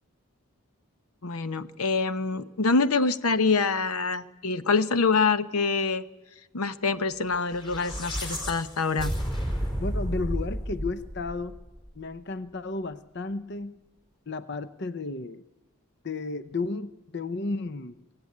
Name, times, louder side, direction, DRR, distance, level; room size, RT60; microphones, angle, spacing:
voice 1, 1.2-6.0 6.5-9.1, left 4 dB, 85° left, 13 dB, 0.9 m, -25 dB
sound 1, 7.4-11.9, equal, 20° left, 3.8 m, -32 dB
voice 2, 9.8-11.6 12.0-13.7 14.3-15.4 16.0-17.9, left 3 dB, 50° left, 13 dB, 0.7 m, -33 dB
23.5 x 16.0 x 9.6 m, 1.1 s
head